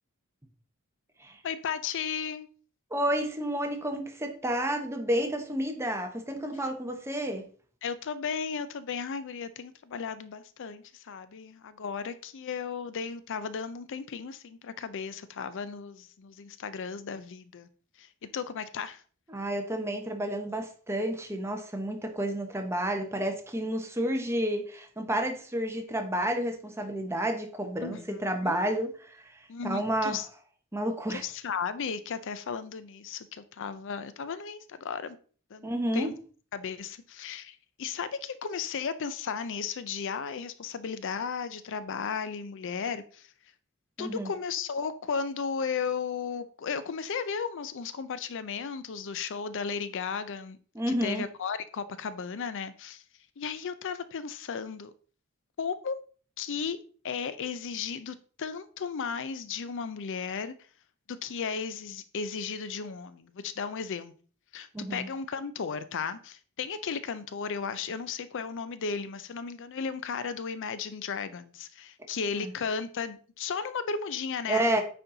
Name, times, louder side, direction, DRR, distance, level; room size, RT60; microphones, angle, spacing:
voice 1, 1.4-2.5 7.8-17.7 18.0-19.0 27.8-28.5 29.5-30.3 31.1-35.2 35.5-36.1 36.5-43.3 44.0-50.6 51.0-53.0 53.4-54.9 55.6-56.0 56.4-56.8 57.0-60.5 61.1-64.1 64.5-74.7, left 6 dB, 55° left, 0.5 m, -35 dB
voice 2, 2.9-7.4 19.3-29.2 29.6-30.2 30.7-31.2 35.6-36.1 44.0-44.3 50.7-51.2 64.7-65.1 72.4-72.5 74.5-74.8, right 1 dB, 10° right, 1.0 m, -30 dB
9.1 x 4.3 x 3.9 m
head